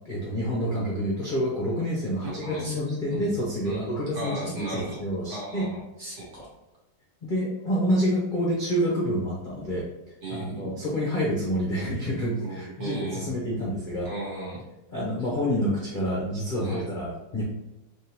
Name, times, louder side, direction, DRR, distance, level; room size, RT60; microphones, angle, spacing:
voice 1, 0.0-5.7 7.2-14.1 14.9-17.4, equal, 55° left, -5 dB, 0.5 m, -28 dB
voice 2, 2.2-2.8 3.1-3.3 3.6-5.0 5.3-6.5 10.2-10.8 12.4-13.3 14.0-14.6 16.6-16.9, right 2 dB, 45° right, -5 dB, 1.3 m, -36 dB
3.6 x 3.3 x 2.9 m, 0.96 s
omnidirectional pair, 2.0 m